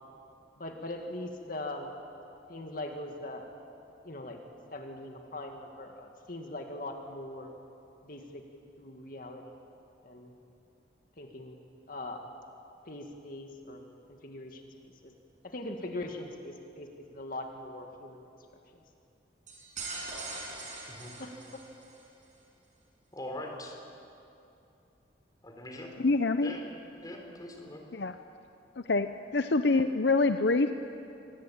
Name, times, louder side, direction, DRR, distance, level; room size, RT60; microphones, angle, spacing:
voice 1, 0.6-1.9 2.5-3.5 4.0-4.4 4.7-7.5 8.0-8.4 8.8-9.5 10.0-10.3 11.2-11.6 11.9-12.2 12.9-13.8 14.1-14.6 15.0-15.1 15.4-18.2 21.2-21.6, left 1 dB, 50° left, 3 dB, 2.1 m, -41 dB
sound 1, 19.5-22.0, right 3 dB, 45° right, 6.7 m, -41 dB
voice 2, 23.1-23.8 25.4-25.9 26.4-26.6 26.9-27.8, left 1 dB, 20° left, 2 dB, 3.8 m, -42 dB
voice 3, 26.0-26.5 27.9-28.1 28.8-29.1 29.3-30.7, left 3 dB, 70° left, 8 dB, 0.7 m, -25 dB
26.0 x 20.0 x 8.9 m, 2.8 s
head